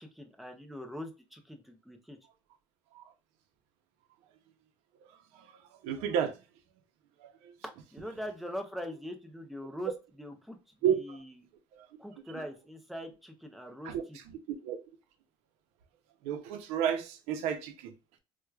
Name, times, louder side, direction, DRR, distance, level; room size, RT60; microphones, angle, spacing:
voice 1, 0.0-2.2 7.9-9.9 10.2-10.6 10.9-11.4 12.0-14.2, equal, ahead, 0.4 m, -42 dB
voice 2, 5.1-6.4 7.2-7.5 10.8-11.2 11.8-11.9 12.3-12.4 13.8-14.8 16.2-17.9, right 9 dB, 75° right, 0.6 m, -33 dB
4.5 x 2.2 x 2.2 m
cardioid pair, 175°, 11 cm